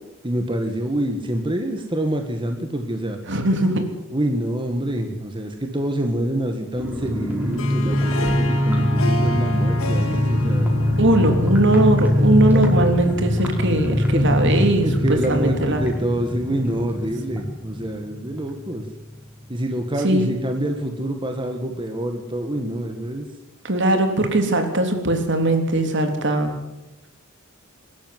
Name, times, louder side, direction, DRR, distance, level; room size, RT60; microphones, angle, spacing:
voice 1, 0.2-3.2 4.1-10.7 12.5-12.8 14.1-14.3 14.8-18.9 19.5-23.3, right 1 dB, 25° right, 4 dB, 1.9 m, -26 dB
voice 2, 3.3-3.9 11.0-15.8 20.0-20.3 23.6-26.5, right 1 dB, 60° right, 5 dB, 3.4 m, -20 dB
sound 1, 6.8-19.1 19.4-19.5 19.8-20.1, left 1 dB, 10° right, 5.2 m, -22 dB
Harp, 7.4-12.6, left 1 dB, 85° left, 2.0 m, -32 dB
23.5 x 13.0 x 9.5 m, 1.0 s
head